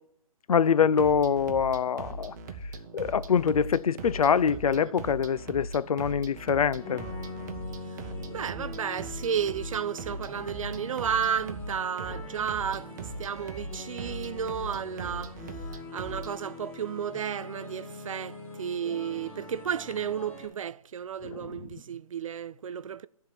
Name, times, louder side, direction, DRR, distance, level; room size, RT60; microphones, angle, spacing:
voice 1, 0.5-2.3 2.9-7.1 21.2-21.7, left 7 dB, 80° left, 0.4 m, -25 dB
sound 1, 0.8-16.3, right 2 dB, 30° right, 0.8 m, -40 dB
sound 2, 6.8-20.5, left 2 dB, 10° left, 0.9 m, -43 dB
voice 2, 8.3-15.4 15.9-23.1, right 8 dB, 65° right, 0.4 m, -33 dB
10.5 x 3.7 x 7.2 m
hypercardioid pair, 155°, 18 cm